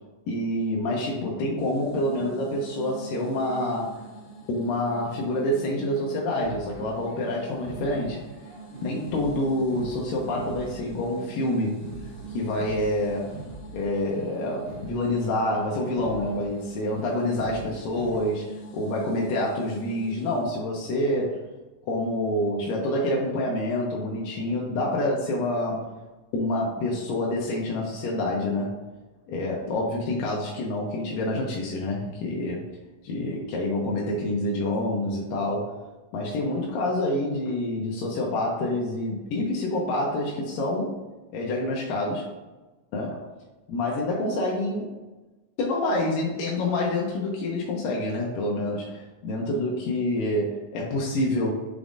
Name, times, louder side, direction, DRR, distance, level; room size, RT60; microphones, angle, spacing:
voice 1, 0.3-4.0 4.5-8.2 8.8-11.8 12.3-13.4 13.7-21.4 21.9-25.9 26.3-28.8 29.3-32.7 33.0-35.7 36.1-41.0 41.3-42.3 42.9-43.2 43.7-44.9 45.6-51.5, left 1 dB, 80° left, -2 dB, 2.4 m, -27 dB
sound 1, 1.6-20.5, right 4 dB, 65° left, 2.3 m, -43 dB
sound 2, 6.4-18.2, right 4 dB, 80° right, 2.3 m, -43 dB
6.0 x 3.5 x 2.5 m, 1.2 s
omnidirectional pair, 3.9 m